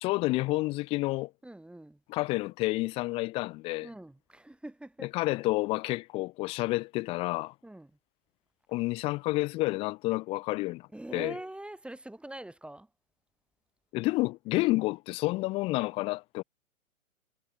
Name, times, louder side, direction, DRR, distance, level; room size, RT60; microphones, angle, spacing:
voice 1, 0.0-1.3 2.1-3.9 5.1-7.5 8.7-11.3 13.9-16.4, left 21 dB, 15° left, 0.5 m, -29 dB
voice 2, 1.4-2.0 3.8-5.1 7.6-8.0 10.9-12.9, right 1 dB, ahead, 2.6 m, -44 dB
hypercardioid pair, 125°, 42 cm